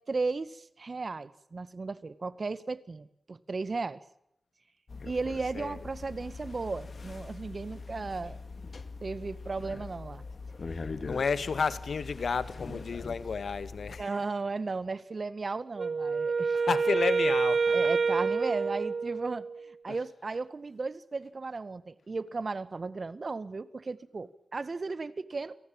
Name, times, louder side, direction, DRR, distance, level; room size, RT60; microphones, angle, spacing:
voice 1, 0.1-4.0 5.0-8.4 9.0-10.2 12.7-12.8 14.0-16.6 17.7-25.6, right 3 dB, 55° right, 1.8 m, -35 dB
sound 1, 4.9-14.0, left 4 dB, 60° left, 2.5 m, -42 dB
voice 2, 10.7-14.1 16.5-17.7, left 5 dB, 80° left, 1.9 m, -32 dB
Wind instrument woodwind instrument, 15.8-19.7, right 4 dB, 75° right, 1.4 m, -27 dB
29.5 x 18.5 x 8.9 m
cardioid pair, 65°, 0 cm